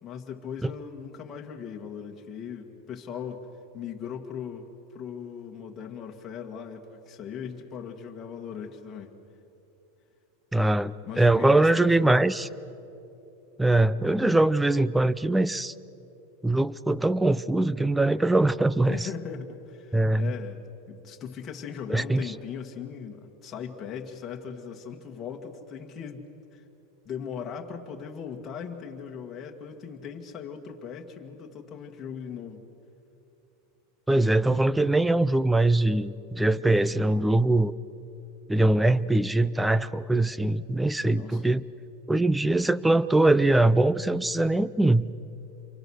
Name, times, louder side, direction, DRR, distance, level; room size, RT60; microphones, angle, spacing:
voice 1, 0.0-3.4 3.7-9.1 11.1-12.3 18.9-26.3 26.5-26.6 27.1-32.6 41.1-41.4, left 7 dB, 25° left, 0 dB, 2.0 m, -39 dB
voice 2, 10.5-12.5 13.6-15.7 16.4-19.1 19.9-20.3 21.9-22.2 34.1-37.7 38.5-41.6 42.1-45.1, right 2 dB, 5° right, 18 dB, 0.5 m, -22 dB
27.5 x 24.0 x 6.5 m, 2.9 s
supercardioid pair, 140°, 0 cm